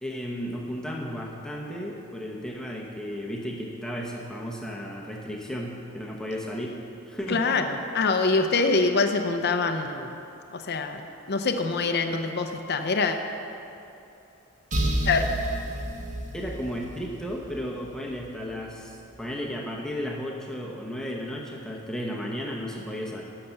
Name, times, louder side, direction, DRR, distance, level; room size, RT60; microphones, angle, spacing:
voice 1, 0.0-6.8 7.0-7.5 16.3-23.2, equal, 5° left, -2 dB, 0.9 m, -34 dB
voice 2, 7.3-10.2 10.5-11.0 11.3-13.2 15.1-15.3, left 4 dB, 50° left, 6 dB, 0.6 m, -25 dB
sound 1, 14.7-18.4, right 1 dB, 35° right, 1.2 m, -31 dB
12.0 x 6.7 x 7.0 m, 2.8 s
head